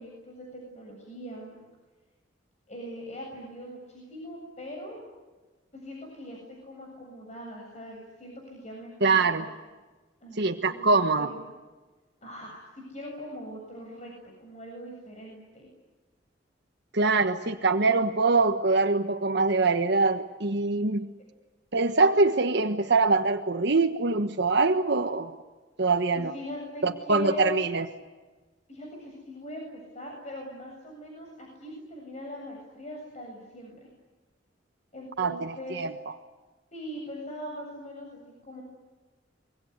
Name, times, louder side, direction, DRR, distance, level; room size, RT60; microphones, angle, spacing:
voice 1, 0.0-1.6 2.7-5.0 5.7-9.4 10.2-10.9 11.2-11.5 12.2-14.1 14.4-15.7 26.1-27.6 28.7-33.9 34.9-35.8 36.7-38.6, left 1 dB, 40° left, -1 dB, 7.5 m, -41 dB
voice 2, 9.0-9.5 10.4-11.3 16.9-21.1 21.7-25.3 25.8-26.3 26.8-27.9 35.2-35.9, right 3 dB, 65° right, 5 dB, 1.4 m, -24 dB
25.0 x 23.0 x 9.6 m, 1.3 s
head